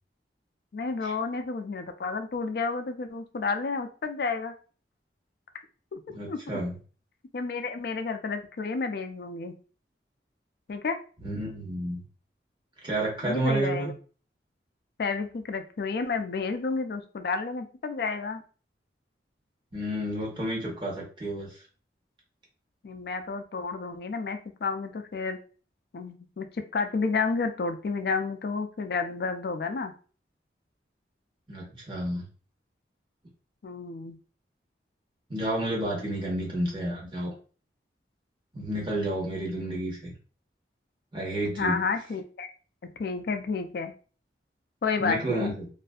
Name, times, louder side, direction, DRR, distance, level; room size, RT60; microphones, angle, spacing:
voice 1, 0.7-4.5 5.9-6.0 6.3-6.4 7.3-9.6 10.7-11.0 13.2-13.9 15.0-18.4 22.8-25.4 25.9-29.9 33.6-34.2 41.5-42.5 42.8-43.9 44.8-45.5, left 4 dB, 55° left, 8 dB, 0.3 m, -31 dB
voice 2, 6.1-6.7 11.2-12.0 12.8-13.9 19.7-21.6 31.5-32.3 35.3-37.3 38.5-40.1 41.1-41.8 45.0-45.7, right 1 dB, 25° right, -3 dB, 0.9 m, -30 dB
2.6 x 2.4 x 2.3 m, 0.39 s
head